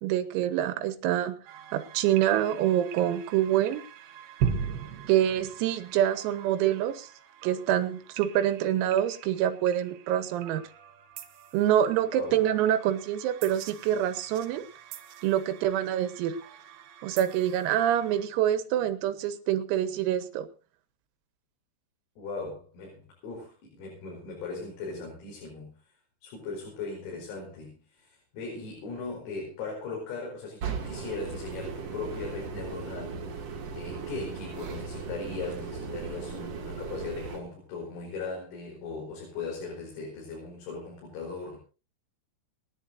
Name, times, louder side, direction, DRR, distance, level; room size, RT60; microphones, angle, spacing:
voice 1, 0.0-1.4 1.7-3.8 5.1-7.1 7.4-10.6 11.5-14.7 15.2-16.4 17.0-20.5, right 11 dB, 90° right, 10 dB, 4.0 m, -26 dB
sound 1, 1.5-18.3, right 7 dB, 65° right, 2.8 m, -40 dB
voice 2, 12.1-12.4 22.2-25.9 26.2-33.2 33.7-41.6, left 4 dB, 85° left, -1 dB, 7.4 m, -38 dB
sound 2, 30.6-37.4, right 5 dB, 45° right, 3.5 m, -37 dB
29.0 x 11.0 x 2.8 m, 0.33 s
omnidirectional pair, 5.9 m